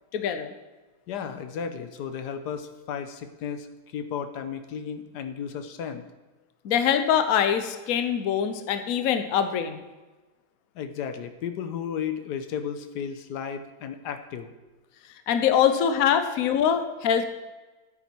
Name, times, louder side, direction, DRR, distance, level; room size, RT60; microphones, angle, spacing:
voice 1, 0.1-0.5 6.6-9.8 15.3-17.3, left 8 dB, 65° left, 8 dB, 1.2 m, -23 dB
voice 2, 1.1-6.0 10.7-14.5 16.7-16.9, left 7 dB, 85° left, 8 dB, 1.4 m, -34 dB
13.5 x 8.2 x 4.6 m, 1.2 s
omnidirectional pair, 1.7 m